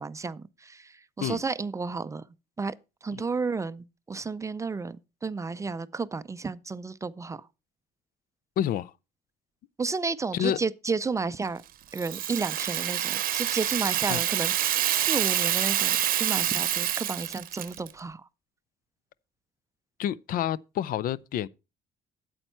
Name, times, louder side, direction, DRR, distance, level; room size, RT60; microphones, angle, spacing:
voice 1, 0.0-2.2 2.6-2.7 3.0-7.5 9.8-11.6 11.9-18.2, right 4 dB, 20° right, 0.4 m, -32 dB
voice 2, 8.6-8.9 10.3-10.6 14.1-14.2 20.0-21.5, left 10 dB, 55° left, 0.4 m, -28 dB
Rattle (instrument), 11.9-17.9, right 12 dB, 60° right, 0.8 m, -27 dB
8.8 x 8.0 x 4.3 m
cardioid pair, 110°, 17 cm